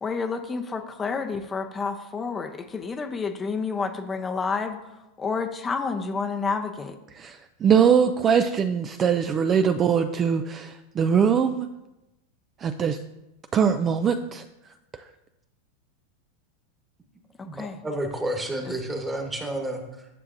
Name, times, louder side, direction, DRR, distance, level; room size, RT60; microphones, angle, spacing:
voice 1, 0.0-4.8 5.2-7.0 17.5-17.8 18.6-18.7, left 4 dB, 20° left, 5 dB, 0.6 m, -29 dB
voice 2, 7.2-11.7 12.6-13.0 13.5-14.4, right 7 dB, 30° right, 9 dB, 0.4 m, -22 dB
voice 3, 17.4-20.1, right 1 dB, 15° right, 3 dB, 1.3 m, -31 dB
9.7 x 6.3 x 2.6 m, 0.95 s
hypercardioid pair, 100°, 0 cm